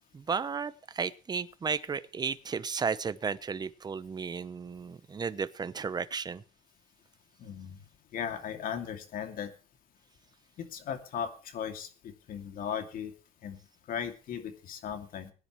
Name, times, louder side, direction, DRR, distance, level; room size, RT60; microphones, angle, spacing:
voice 1, 0.1-6.4, right 5 dB, 25° right, 0.9 m, -34 dB
voice 2, 7.4-7.8 8.1-9.5 10.6-13.1 13.4-13.6 13.9-15.3, left 8 dB, 55° left, 2.6 m, -37 dB
21.5 x 10.0 x 3.2 m
cardioid pair, 125°, 17 cm